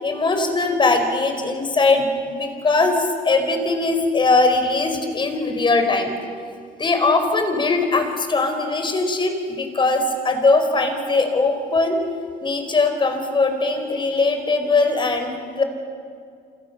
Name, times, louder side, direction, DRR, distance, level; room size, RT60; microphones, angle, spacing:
voice 1, 0.0-6.1 6.8-12.0 12.4-15.6, left 3 dB, 30° left, 6 dB, 4.7 m, -20 dB
28.0 x 28.0 x 6.8 m, 2.3 s
cardioid pair, 110°, 17 cm